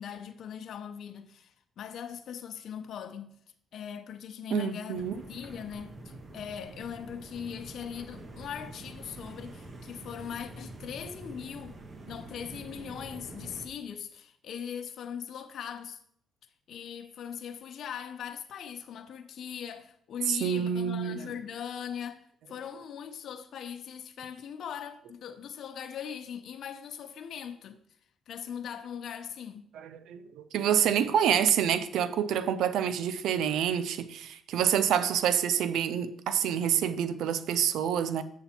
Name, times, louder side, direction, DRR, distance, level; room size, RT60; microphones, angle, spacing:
voice 1, 0.0-3.3 3.7-11.8 12.1-16.0 16.7-27.8 28.3-29.7, left 8 dB, 65° left, 0.7 m, -40 dB
voice 2, 4.5-5.2 20.3-21.3 29.7-38.2, right 8 dB, 80° right, 0.6 m, -27 dB
sound 1, 4.9-13.7, right 2 dB, 40° right, 1.4 m, -46 dB
7.4 x 6.8 x 4.4 m
cardioid pair, 90°, 0 cm